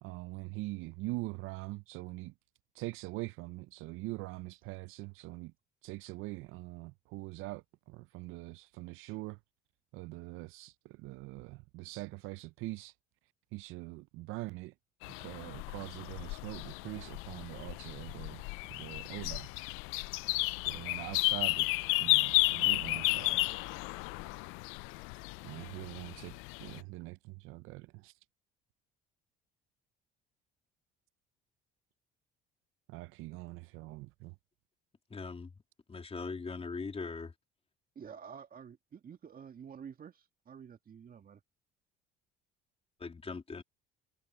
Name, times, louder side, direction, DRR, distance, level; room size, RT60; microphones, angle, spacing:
voice 1, 0.0-2.3 2.8-5.5 5.8-9.4 9.9-12.9 13.5-14.7 15.2-18.4 18.7-19.5 20.7-21.7 22.0-23.4 25.4-28.1 32.9-34.3, right 21 dB, 75° right, 0.6 m, -43 dB
sound 1, 15.0-26.8, left 25 dB, 75° left, 0.4 m, -33 dB
voice 2, 35.1-35.5 35.9-37.3 43.0-43.6, left 4 dB, 30° left, 3.2 m, -40 dB
voice 3, 38.0-41.4, right 7 dB, 45° right, 2.0 m, -49 dB
supercardioid pair, 70°, 21 cm